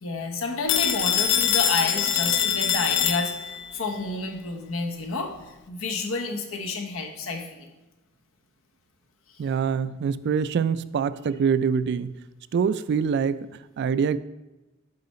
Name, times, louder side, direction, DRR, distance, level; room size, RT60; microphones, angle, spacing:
voice 1, 0.0-7.7 9.3-9.4, left 3 dB, 85° left, 3 dB, 1.0 m, -30 dB
Telephone, 0.7-3.7, left 10 dB, 60° left, 0.5 m, -24 dB
voice 2, 9.4-12.1 12.5-13.5 13.8-14.2, right 6 dB, 55° right, 15 dB, 0.3 m, -24 dB
7.7 x 4.7 x 4.2 m, 1.1 s
head